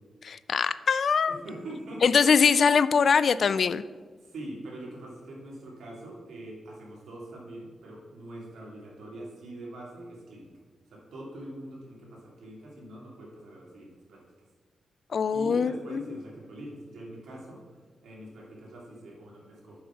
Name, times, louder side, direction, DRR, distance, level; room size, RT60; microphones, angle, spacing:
voice 1, 0.2-1.4 2.0-3.8 15.1-16.0, left 6 dB, 60° left, 16 dB, 0.3 m, -23 dB
voice 2, 1.3-2.0 4.2-10.5 10.9-14.2 15.3-19.8, right 1 dB, 75° right, -3 dB, 2.6 m, -43 dB
7.4 x 5.2 x 5.8 m, 1.5 s
cardioid pair, 75°, 0 cm